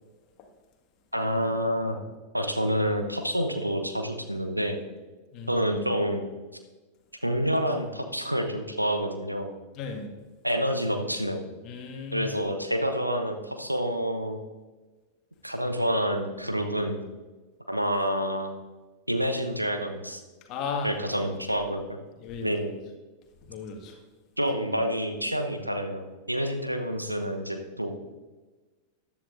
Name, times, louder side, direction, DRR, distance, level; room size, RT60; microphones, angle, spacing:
voice 1, 1.1-2.0 2.3-4.8 5.5-6.2 7.2-9.5 10.4-11.4 12.1-14.4 15.4-17.0 17.7-18.5 19.1-20.2 20.8-22.0 22.4-22.7 24.4-27.9, equal, 90° right, 5 dB, 0.9 m, -28 dB
voice 2, 9.7-10.1 11.6-12.3 20.5-20.9 22.2-22.5 23.5-23.9, left 5 dB, 40° left, 3 dB, 1.7 m, -35 dB
14.0 x 10.5 x 2.6 m, 1.3 s
figure-of-eight pair, 90°, 0 cm